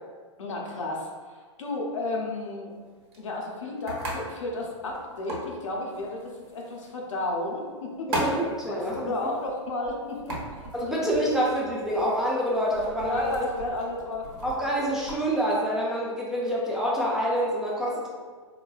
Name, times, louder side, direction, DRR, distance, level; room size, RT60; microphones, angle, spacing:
voice 1, 0.4-2.7 3.2-8.1 8.7-10.4 10.8-11.0 13.0-14.3, left 2 dB, 75° left, -1 dB, 0.7 m, -32 dB
sound 1, 2.7-15.2, right 1 dB, 55° right, 1.0 m, -39 dB
voice 2, 8.1-9.1 10.7-13.4 14.4-18.1, equal, 5° right, -5 dB, 0.5 m, -27 dB
4.0 x 2.2 x 2.3 m, 1.5 s
hypercardioid pair, 110°, 16 cm